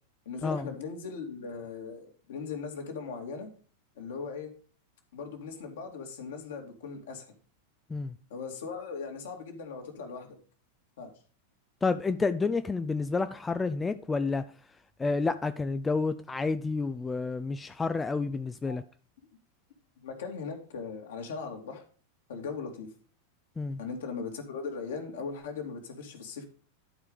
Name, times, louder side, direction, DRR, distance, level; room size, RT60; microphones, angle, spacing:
voice 1, 0.3-3.5 4.0-4.5 5.1-7.3 8.3-10.4 11.0-11.1 18.7-18.8 20.0-21.8 22.3-22.9 23.8-26.4, left 5 dB, 60° left, 2.2 m, -39 dB
voice 2, 11.8-14.4 15.0-18.8 23.6-23.8, left 4 dB, 15° left, 0.4 m, -29 dB
11.5 x 4.8 x 5.1 m
figure-of-eight pair, 90°, 0 cm